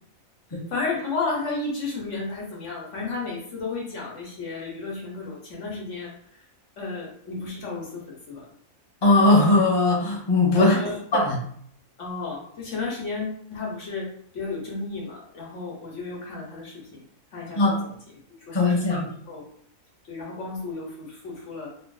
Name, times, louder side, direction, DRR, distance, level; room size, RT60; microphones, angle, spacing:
voice 1, 0.7-6.1 6.8-8.4 10.6-11.0 12.0-17.0 17.3-17.9 18.5-19.5 20.1-21.7, left 3 dB, 60° left, -3 dB, 1.3 m, -33 dB
voice 2, 9.0-10.8 11.1-11.4 17.5-17.8 18.5-19.0, left 2 dB, 20° left, -4 dB, 0.8 m, -19 dB
2.9 x 2.6 x 3.9 m, 0.64 s
omnidirectional pair, 1.5 m